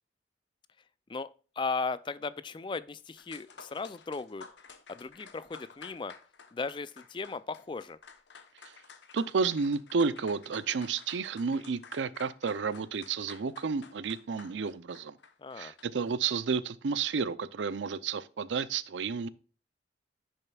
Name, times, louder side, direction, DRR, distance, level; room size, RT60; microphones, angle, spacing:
voice 1, 1.6-4.5 4.9-6.1 6.5-8.0 15.4-15.7, left 4 dB, 25° left, 0.3 m, -36 dB
sound 1, 2.9-3.0 3.2-16.1, left 5 dB, 75° left, 0.9 m, -53 dB
voice 2, 9.1-15.2 15.6-19.3, right 5 dB, 85° right, 0.5 m, -31 dB
10.5 x 6.5 x 2.3 m
head